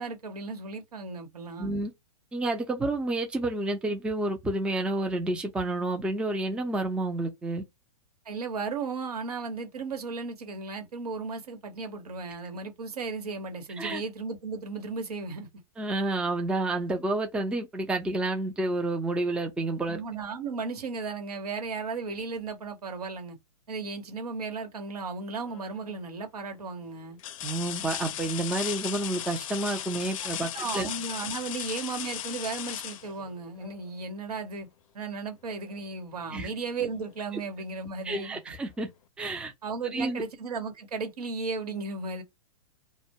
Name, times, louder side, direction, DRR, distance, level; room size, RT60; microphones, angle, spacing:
voice 1, 0.0-1.8 8.2-15.5 19.9-23.4 23.7-27.2 30.5-34.7 34.9-38.4 39.6-42.2, right 4 dB, 85° right, 1.0 m, -35 dB
voice 2, 1.6-1.9 2.3-7.6 13.8-14.0 15.8-20.0 27.4-30.9 36.3-36.5 38.0-38.9 39.2-39.5 39.9-40.2, right 2 dB, 5° right, 0.4 m, -29 dB
sound 1, 25.4-25.9 26.5-26.6 27.2-33.9 35.7-35.8 36.3-37.3 38.6-38.7, left 11 dB, 60° left, 0.4 m, -37 dB
2.2 x 2.1 x 2.7 m
hypercardioid pair, 125°, 19 cm